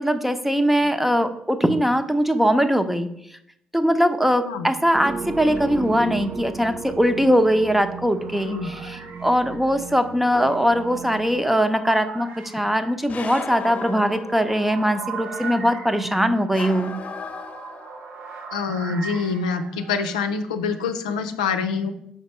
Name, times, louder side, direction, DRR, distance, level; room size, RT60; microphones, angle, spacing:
voice 1, 0.0-3.1 3.7-17.0, equal, 5° right, 9 dB, 0.8 m, -21 dB
sound 1, 4.9-11.5, right 5 dB, 45° right, 0.5 m, -35 dB
sound 2, 6.9-20.2, right 5 dB, 70° right, 1.0 m, -40 dB
sound 3, 10.3-11.3 13.1-14.8 16.5-18.2, left 5 dB, 45° left, 0.9 m, -36 dB
voice 2, 18.5-21.9, left 5 dB, 90° left, 6 dB, 0.5 m, -25 dB
6.0 x 5.1 x 4.4 m, 0.73 s
hypercardioid pair, 45°, 3 cm